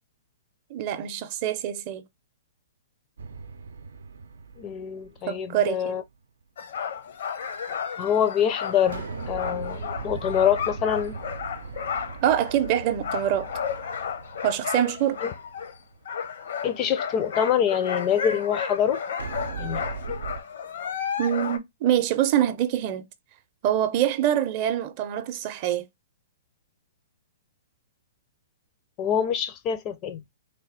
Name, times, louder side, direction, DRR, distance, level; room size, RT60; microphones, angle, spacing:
voice 1, 0.7-2.0 5.3-6.0 12.2-13.5 14.4-15.2 21.2-23.0 23.6-25.8, right 11 dB, 40° right, 0.6 m, -25 dB
sound 1, 3.2-5.7 8.9-16.1 19.2-20.4, right 5 dB, 85° right, 0.5 m, -39 dB
voice 2, 4.6-6.0 8.0-11.2 15.2-15.3 16.6-19.0 19.6-19.8 29.0-30.2, left 9 dB, 30° left, 0.5 m, -25 dB
sound 2, 6.6-15.7 16.1-21.6, left 7 dB, 70° left, 0.7 m, -33 dB
3.4 x 2.3 x 4.0 m
hypercardioid pair, 150°, 0 cm